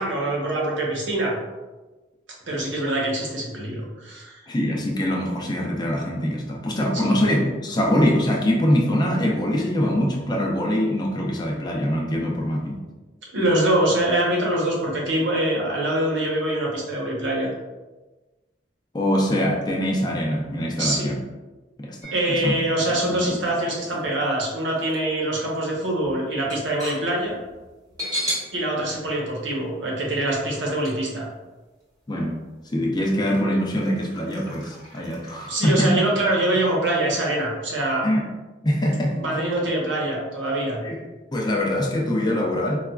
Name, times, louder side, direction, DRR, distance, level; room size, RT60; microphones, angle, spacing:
voice 1, 0.0-1.4 2.5-4.4 6.9-7.2 13.3-17.5 20.8-21.1 22.1-27.4 28.5-31.3 35.5-38.0 39.1-40.8, right 1 dB, 85° right, -3 dB, 0.9 m, -24 dB
voice 2, 4.5-12.8 18.9-21.2 21.8-22.6 23.1-23.2 32.1-32.4 32.7-36.0 38.0-38.2 38.6-39.2 40.8-41.0 41.3-42.8, equal, 25° left, 0 dB, 0.5 m, -23 dB
sound 1, 22.0-22.7 23.3-25.0 25.3-25.4 25.8-28.5 28.9-29.0 30.8-30.9 31.8-31.9 32.4-32.5 33.3-35.5, equal, 20° right, 0.9 m, -35 dB
4.0 x 2.3 x 2.3 m, 1.2 s
head